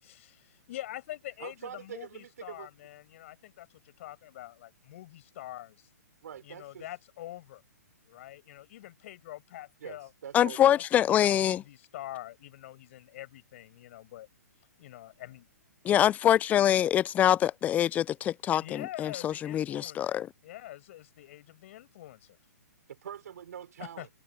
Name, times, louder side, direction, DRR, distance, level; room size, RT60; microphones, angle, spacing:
voice 1, 0.0-5.9 6.4-7.6 8.1-10.1 10.6-14.3 14.8-15.5 18.6-22.4 24.0-24.1, left 14 dB, 50° left, 7.4 m, -45 dB
voice 2, 1.4-2.7 6.2-6.9 9.8-10.7 22.9-24.1, right 9 dB, 65° right, 5.3 m, -44 dB
voice 3, 10.3-11.6 15.8-20.3, left 11 dB, 15° left, 0.5 m, -25 dB
hypercardioid pair, 135°, 9 cm